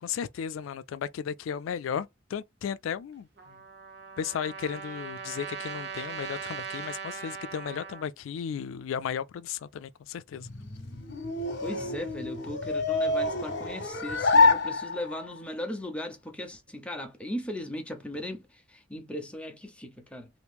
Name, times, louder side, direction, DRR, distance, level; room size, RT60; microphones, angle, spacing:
voice 1, 0.0-3.3 4.2-10.5, left 8 dB, 90° left, 0.3 m, -35 dB
Trumpet, 3.4-8.1, right 6 dB, 55° right, 0.8 m, -39 dB
sound 1, 10.4-15.4, left 3 dB, 60° left, 0.9 m, -27 dB
voice 2, 11.6-20.3, left 1 dB, 5° left, 0.7 m, -37 dB
3.0 x 2.6 x 3.4 m
head